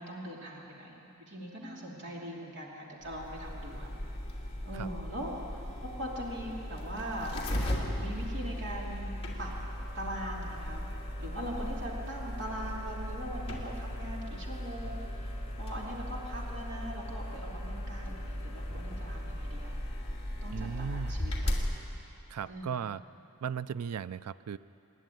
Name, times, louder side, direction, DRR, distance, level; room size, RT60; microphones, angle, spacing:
voice 1, 0.0-3.9 4.6-5.4 5.8-7.3 7.7-9.1 9.4-9.5 9.9-10.8 11.2-15.3 15.6-19.8 20.4-21.5 22.5-22.8, equal, 55° right, -2 dB, 3.0 m, -41 dB
sound 1, 3.0-21.7, equal, 25° left, 2.7 m, -37 dB
voice 2, 20.5-21.1 22.3-23.0 23.4-24.6, right 7 dB, 85° right, 16 dB, 0.4 m, -36 dB
27.0 x 11.0 x 9.2 m, 2.8 s
head